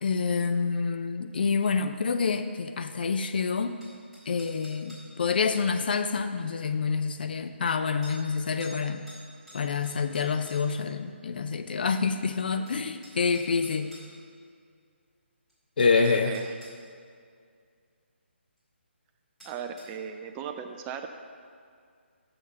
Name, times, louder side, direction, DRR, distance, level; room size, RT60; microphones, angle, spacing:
voice 1, 0.0-3.8 4.3-9.0 9.5-13.9 15.8-16.3, left 5 dB, 50° left, 9 dB, 0.4 m, -27 dB
sound 1, 3.8-5.1 6.6-6.7 8.0-8.2 8.6-8.8 9.1-10.8 12.2-12.3 12.7-14.1 15.5-15.6 16.0-16.8 19.4-19.9, equal, 5° left, 2.0 m, -50 dB
voice 2, 15.9-16.5 19.4-21.1, right 7 dB, 15° right, 5 dB, 0.4 m, -36 dB
6.7 x 6.3 x 5.8 m, 2.2 s
figure-of-eight pair, 145°, 6 cm